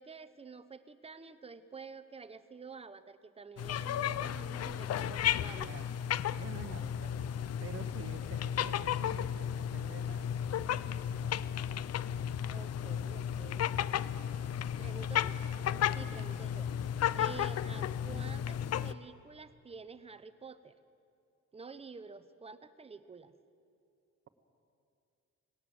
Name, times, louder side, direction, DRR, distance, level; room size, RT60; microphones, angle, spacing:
voice 1, 0.0-5.7 12.5-13.9 14.8-20.8 21.5-23.3, right 5 dB, 20° right, 12 dB, 0.6 m, -50 dB
sound 1, 3.6-18.9, left 9 dB, 60° left, 0.5 m, -34 dB
voice 2, 5.6-6.0 6.4-7.1 7.6-10.9 16.1-16.2 17.2-17.3, right 7 dB, 50° right, 9 dB, 1.0 m, -49 dB
19.5 x 17.5 x 7.7 m, 2.5 s
wide cardioid pair, 170°, 30 cm